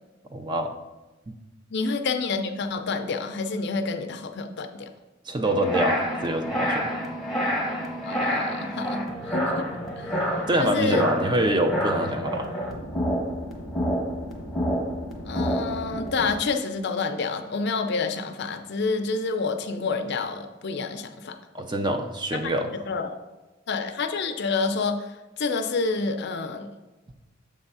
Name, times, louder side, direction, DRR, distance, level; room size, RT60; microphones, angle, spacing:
voice 1, 0.3-0.7 5.3-6.9 10.5-12.5 21.5-22.7, right 1 dB, 25° right, 6 dB, 0.5 m, -25 dB
voice 2, 1.7-4.9 8.0-9.7 10.0-10.2 10.6-11.1 15.3-21.4 22.3-22.5 22.9-23.2 23.7-25.1 25.4-26.7, left 4 dB, 60° left, 7 dB, 0.5 m, -28 dB
sound 1, 5.4-16.3, equal, ahead, 1.0 m, -28 dB
7.2 x 3.5 x 5.5 m, 1.1 s
head